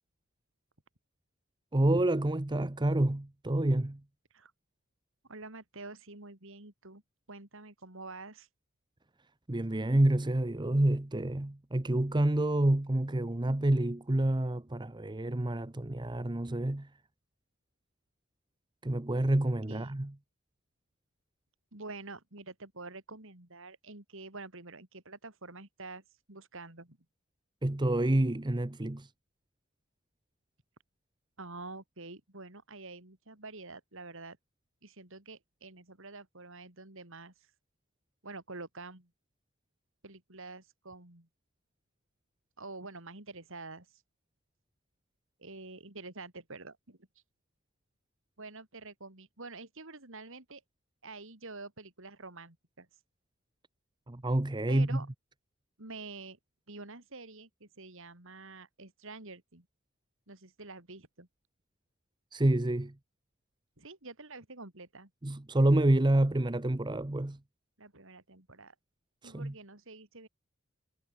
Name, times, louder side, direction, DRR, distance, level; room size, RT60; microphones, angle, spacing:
voice 1, 1.7-4.0 9.5-16.9 18.8-20.1 27.6-29.1 54.1-55.0 62.3-62.9 65.2-67.4 69.2-69.5, right 1 dB, 20° right, 0.8 m, -28 dB
voice 2, 5.2-7.0 7.3-8.5 19.7-19.9 21.7-27.0 31.4-34.4 34.8-37.5 38.2-39.1 40.0-41.3 42.6-44.0 45.4-47.0 48.4-50.6 51.0-52.9 54.7-55.1 55.8-56.4 56.7-59.7 60.3-61.3 63.8-65.1 67.8-68.8 69.2-70.3, right 3 dB, 65° right, 3.9 m, -47 dB
head